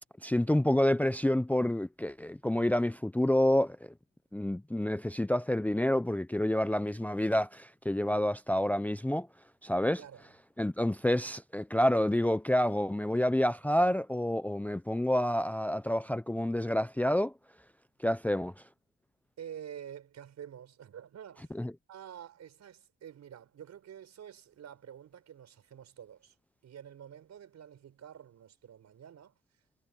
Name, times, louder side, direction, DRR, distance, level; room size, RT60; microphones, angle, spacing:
voice 1, 0.2-3.8 4.3-9.3 9.6-10.0 10.6-17.3 18.0-18.5 21.6-21.7, left 1 dB, 5° left, 0.7 m, -28 dB
voice 2, 10.0-10.3 19.4-21.5 21.9-26.3 26.6-29.4, right 9 dB, 60° right, 5.0 m, -48 dB
cardioid pair, 90°, 30 cm